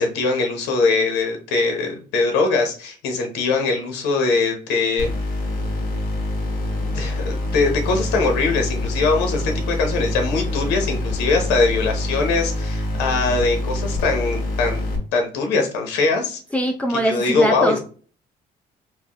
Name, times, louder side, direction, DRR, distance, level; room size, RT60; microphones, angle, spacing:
voice 1, 0.0-5.1 6.9-14.8 15.1-16.4 16.9-17.8, left 3 dB, 90° left, 3 dB, 1.0 m, -21 dB
sound 1, 5.0-15.0, left 1 dB, 60° left, 1.9 m, -25 dB
voice 2, 16.5-17.8, equal, 10° left, 2 dB, 0.5 m, -22 dB
4.8 x 2.2 x 2.9 m, 0.40 s
cardioid pair, 110°, 17 cm